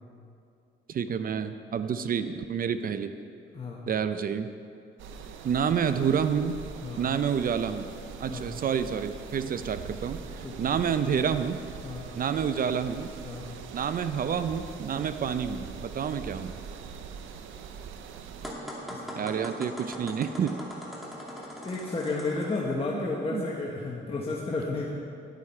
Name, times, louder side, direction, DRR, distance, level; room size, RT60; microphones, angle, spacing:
voice 1, 0.9-3.1 3.9-4.5 5.4-6.6 7.0-7.9 8.2-11.6 12.1-13.1 13.7-16.5 19.2-20.5 22.9-23.5, right 7 dB, 45° right, 10 dB, 0.5 m, -29 dB
sound 1, 5.0-18.5, right 6 dB, 80° right, 0.7 m, -42 dB
sound 2, 18.4-22.6, equal, ahead, 2.3 m, -40 dB
voice 2, 21.6-24.9, left 3 dB, 30° left, -3 dB, 1.3 m, -32 dB
10.5 x 9.6 x 4.4 m, 2.5 s
cardioid pair, 90°, 20 cm